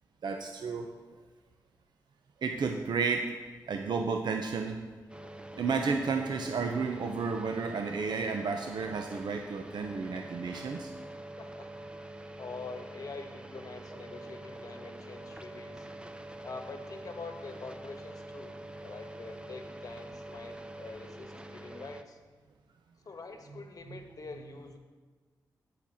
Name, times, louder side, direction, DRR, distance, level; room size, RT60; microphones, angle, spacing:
voice 1, 0.2-0.9 2.4-3.3 3.7-4.8 5.6-10.9 23.9-24.0, right 5 dB, 70° right, 3 dB, 0.8 m, -32 dB
sound 1, 5.1-22.0, right 1 dB, 15° right, 0.7 m, -45 dB
voice 2, 11.4-11.7 12.1-15.9 16.4-22.2 23.0-24.8, left 3 dB, 50° left, 5 dB, 1.4 m, -45 dB
8.4 x 6.0 x 7.3 m, 1.4 s
cardioid pair, 55°, 8 cm